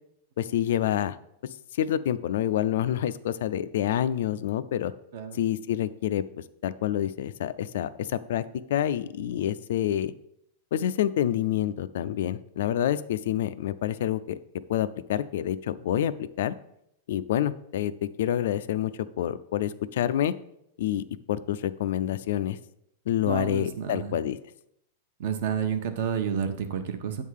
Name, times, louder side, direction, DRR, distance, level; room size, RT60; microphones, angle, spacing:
voice 1, 0.4-1.2 1.7-4.9 5.3-6.2 6.6-10.1 10.7-14.4 14.7-16.5 17.1-18.9 19.2-20.3 20.8-22.6 23.1-24.4, left 11 dB, 65° left, 13 dB, 0.4 m, -27 dB
voice 2, 23.2-24.1 25.2-27.2, right 7 dB, 50° right, 8 dB, 0.8 m, -30 dB
8.3 x 3.6 x 6.4 m, 0.76 s
supercardioid pair, 175°, 0 cm